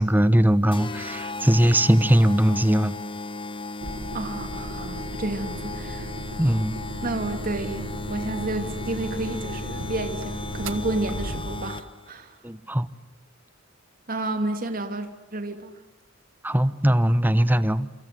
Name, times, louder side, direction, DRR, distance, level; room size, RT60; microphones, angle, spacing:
voice 1, 0.0-2.9 6.4-6.8 12.4-12.9 16.4-17.9, right 1 dB, 10° right, 14 dB, 1.2 m, -20 dB
sound 1, 0.7-12.1, left 3 dB, 25° left, 1.0 m, -35 dB
sound 2, 3.8-11.8, right 2 dB, 75° right, 1.6 m, -36 dB
voice 2, 4.1-6.1 7.0-12.4 14.1-15.8, right 2 dB, 45° right, 6 dB, 3.0 m, -31 dB
28.5 x 27.0 x 7.8 m, 1.0 s
head